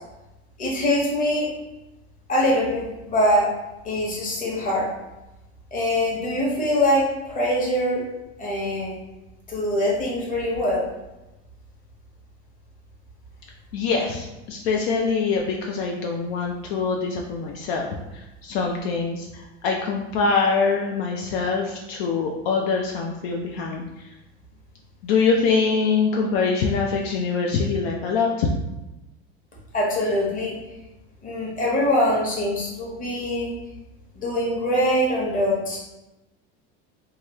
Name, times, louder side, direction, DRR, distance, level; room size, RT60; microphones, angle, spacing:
voice 1, 0.6-1.5 2.3-3.5 3.8-4.9 5.7-8.0 8.4-8.9 9.5-10.8 29.7-30.5 31.2-33.5 34.1-35.8, left 1 dB, 25° left, -4 dB, 1.0 m, -23 dB
voice 2, 13.7-24.1 25.0-28.5, left 5 dB, 65° left, 0 dB, 0.5 m, -24 dB
3.0 x 2.3 x 2.9 m, 0.99 s
supercardioid pair, 110°, 32 cm